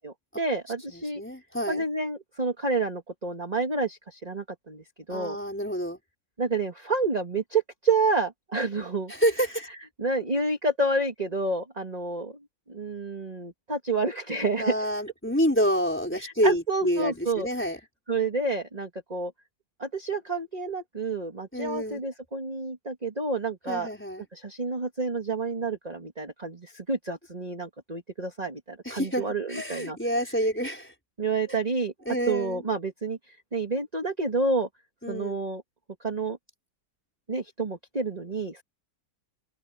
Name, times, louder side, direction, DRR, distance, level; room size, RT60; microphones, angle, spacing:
voice 1, 0.0-1.2 1.7-5.4 6.4-9.1 10.0-12.4 12.7-14.7 16.2-17.5 18.1-19.3 19.8-23.9 24.3-30.0 30.3-30.4 31.2-31.9 32.3-34.7 35.1-35.6 36.0-36.4 37.3-38.6, right 3 dB, 20° right, 2.1 m, -29 dB
voice 2, 0.9-1.8 5.1-6.0 9.1-9.7 14.6-17.8 21.5-22.0 23.7-24.3 28.8-29.2 29.5-30.9 32.1-32.6 35.0-35.4, equal, 5° left, 4.2 m, -28 dB
open air
omnidirectional pair, 2.0 m